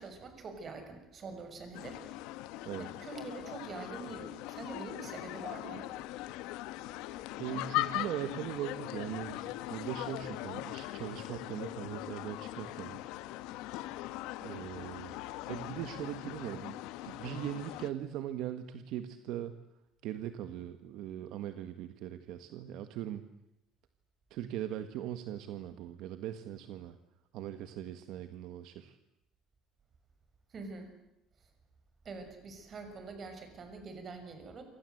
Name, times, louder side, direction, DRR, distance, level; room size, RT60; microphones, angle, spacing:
voice 1, 0.0-2.0 2.8-5.9 30.5-30.9 32.0-34.6, right 3 dB, 25° right, 7 dB, 6.2 m, -45 dB
sound 1, 1.7-17.9, left 16 dB, 75° left, 1.3 m, -40 dB
voice 2, 7.4-13.1 14.4-15.2 15.5-16.8 17.0-19.5 20.0-23.2 24.3-27.0 27.3-29.0, right 11 dB, 60° right, 9 dB, 1.7 m, -40 dB
28.5 x 26.0 x 8.0 m, 0.83 s
cardioid pair, 170°, 0 cm